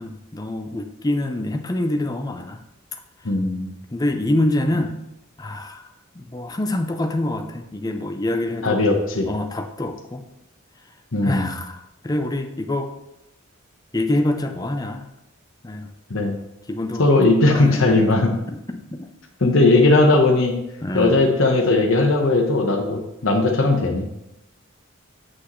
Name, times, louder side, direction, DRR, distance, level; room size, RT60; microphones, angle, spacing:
voice 1, 0.0-2.6 3.9-5.0 5.4-5.8 6.1-8.8 9.3-10.2 11.2-12.9 13.9-15.0 15.6-15.9 16.7-17.1 17.5-18.0 18.5-19.1 20.8-21.2, left 1 dB, 20° left, 5 dB, 0.5 m, -26 dB
voice 2, 3.2-3.7 8.6-9.3 11.1-11.5 16.1-16.4 17.0-18.4 19.4-20.6 20.9-24.3, left 2 dB, 65° left, 3 dB, 1.1 m, -18 dB
7.9 x 6.2 x 3.1 m, 0.87 s
head